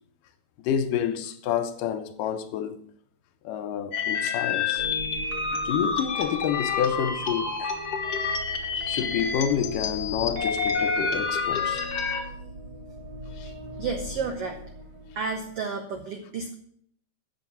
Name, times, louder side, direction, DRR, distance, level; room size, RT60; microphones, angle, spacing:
voice 1, 0.6-2.8 3.4-4.9 5.5-7.7 8.8-11.9 13.3-13.5, left 8 dB, 75° left, 2.2 m, -29 dB
sound 1, 3.9-12.2, left 5 dB, 50° left, 1.2 m, -28 dB
sound 2, 4.8-15.6, equal, 55° right, 1.4 m, -41 dB
voice 2, 13.8-14.6 15.1-16.5, right 4 dB, 90° right, 1.3 m, -31 dB
9.0 x 7.0 x 7.0 m
omnidirectional pair, 4.0 m